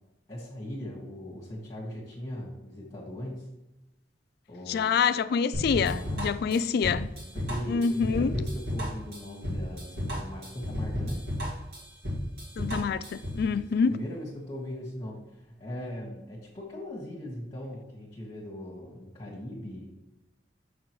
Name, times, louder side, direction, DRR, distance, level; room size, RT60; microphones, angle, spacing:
voice 1, 0.3-3.5 4.5-5.0 5.8-6.6 7.3-11.2 13.5-19.9, left 1 dB, 25° left, 1.6 m, -39 dB
voice 2, 4.7-7.1 7.7-8.3 12.6-14.0, left 6 dB, 60° left, 0.3 m, -26 dB
sound 1, 5.5-13.4, equal, 60° right, 2.2 m, -33 dB
6.5 x 6.1 x 3.1 m
head